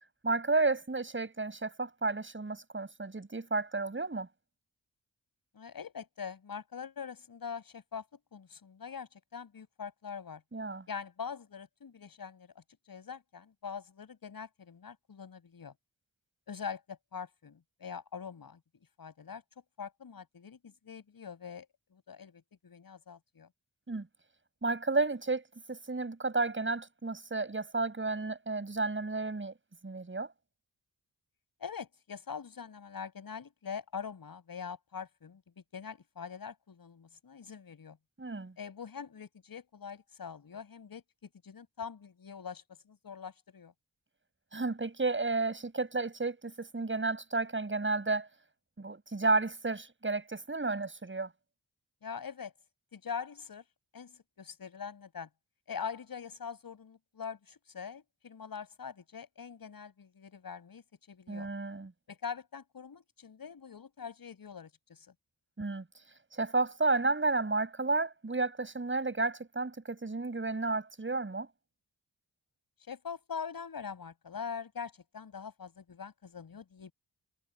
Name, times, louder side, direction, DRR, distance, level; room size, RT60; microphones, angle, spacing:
voice 1, 0.2-4.3 10.5-10.9 23.9-24.1 24.6-29.5 29.8-30.3 38.2-38.5 44.5-48.3 48.8-51.3 61.3-61.9 65.6-65.8 66.3-71.5, right 3 dB, 30° right, 7.5 m, -32 dB
voice 2, 5.5-8.1 8.3-10.4 10.9-15.7 16.5-18.6 19.0-19.4 19.8-23.5 31.6-35.4 35.7-38.0 38.6-43.7 52.0-52.5 52.9-53.6 53.9-55.3 55.7-61.5 62.1-65.1 72.8-76.9, left 6 dB, 65° left, 6.8 m, -43 dB
cardioid pair, 70°, 38 cm